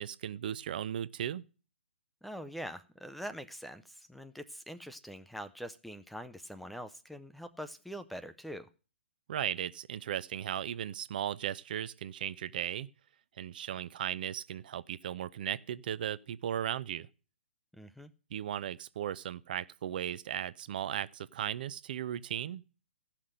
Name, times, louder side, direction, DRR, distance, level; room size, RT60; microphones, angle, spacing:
voice 1, 0.0-1.4 9.3-12.9 13.4-17.1 18.3-22.6, right 10 dB, 50° right, 0.5 m, -36 dB
voice 2, 2.2-8.7 17.7-18.1, equal, ahead, 0.5 m, -44 dB
15.0 x 5.9 x 6.5 m
figure-of-eight pair, 125°, 6 cm